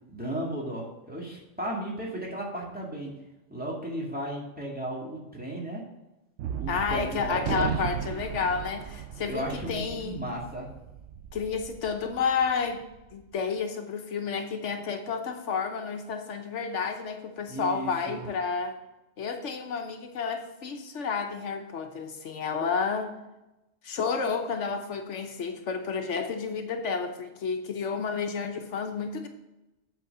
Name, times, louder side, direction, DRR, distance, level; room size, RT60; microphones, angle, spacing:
voice 1, 0.1-3.1 3.5-5.8 6.5-7.7 9.3-10.7 17.5-18.2, right 1 dB, 5° right, -4 dB, 2.1 m, -35 dB
Gunshot gunfire, 6.4-12.9, right 9 dB, 75° right, 0.8 m, -36 dB
voice 2, 6.7-10.2 11.3-12.8 13.1-18.7 19.2-23.1 23.8-29.3, left 5 dB, 80° left, 5 dB, 1.2 m, -31 dB
8.3 x 4.6 x 6.6 m, 0.96 s
omnidirectional pair, 1.2 m